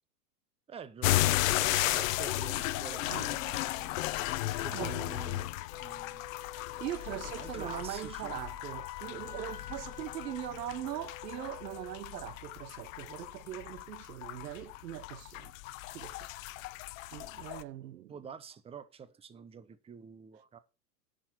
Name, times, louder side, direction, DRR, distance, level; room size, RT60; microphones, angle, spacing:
voice 1, 0.7-1.3 1.6-6.3 7.2-8.4 15.7-15.8 18.1-20.6, right 7 dB, 10° right, 0.8 m, -47 dB
sound 1, 1.0-17.6, left 16 dB, 55° left, 0.7 m, -35 dB
voice 2, 4.4-5.0 6.8-15.5 15.9-16.3 17.1-18.2, right 13 dB, 80° right, 0.7 m, -41 dB
Wind instrument woodwind instrument, 5.7-12.0, left 11 dB, 75° left, 1.4 m, -48 dB
10.0 x 6.3 x 5.8 m
hypercardioid pair, 110°, 48 cm